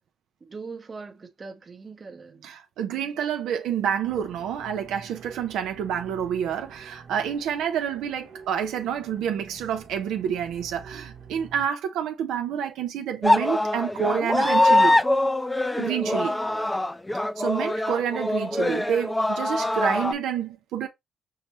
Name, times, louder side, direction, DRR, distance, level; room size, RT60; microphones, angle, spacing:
voice 1, 0.4-2.5 16.0-16.8, right 4 dB, 35° right, 0.8 m, -41 dB
voice 2, 2.4-14.9 15.8-16.4 17.4-20.9, right 8 dB, 85° right, 0.5 m, -28 dB
sound 1, 4.0-11.7, right 5 dB, 60° right, 1.0 m, -47 dB
sound 2, 13.2-20.1, left 1 dB, 10° left, 0.3 m, -23 dB
5.6 x 2.1 x 3.0 m
cardioid pair, 90°, 0 cm